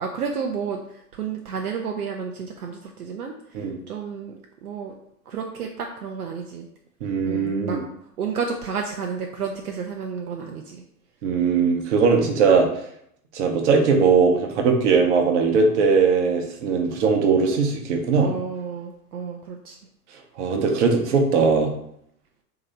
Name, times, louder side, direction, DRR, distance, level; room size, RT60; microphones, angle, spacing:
voice 1, 0.0-4.9 5.3-6.7 7.2-7.8 8.2-10.8 18.2-19.8, right 6 dB, 75° right, 2 dB, 0.5 m, -31 dB
voice 2, 7.0-7.8 11.2-12.7 13.3-18.3 20.4-21.7, right 5 dB, 50° right, 3 dB, 0.8 m, -20 dB
3.1 x 2.8 x 3.9 m, 0.72 s
figure-of-eight pair, 95°, 46 cm